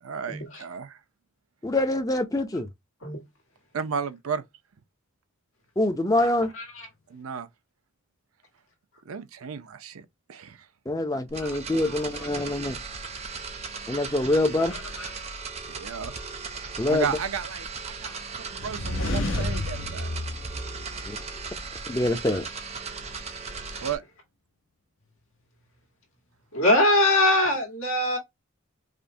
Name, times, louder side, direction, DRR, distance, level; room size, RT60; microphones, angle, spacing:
voice 1, 0.0-1.0 3.7-4.4 7.1-7.5 9.1-10.6 15.7-16.1 16.9-20.1 23.8-24.0, right 6 dB, 80° right, 0.6 m, -33 dB
voice 2, 1.6-2.7 5.8-6.5 10.9-12.8 13.9-14.7 16.8-17.0 21.9-22.4, left 1 dB, 15° left, 0.5 m, -25 dB
voice 3, 6.5-6.9 11.4-11.6 11.8-12.5 15.0-15.1 26.5-28.2, left 1 dB, 80° left, 1.6 m, -23 dB
sound 1, 11.3-24.0, right 4 dB, 30° right, 0.6 m, -37 dB
sound 2, 18.6-21.6, left 2 dB, 60° left, 0.7 m, -31 dB
5.0 x 2.1 x 2.7 m
head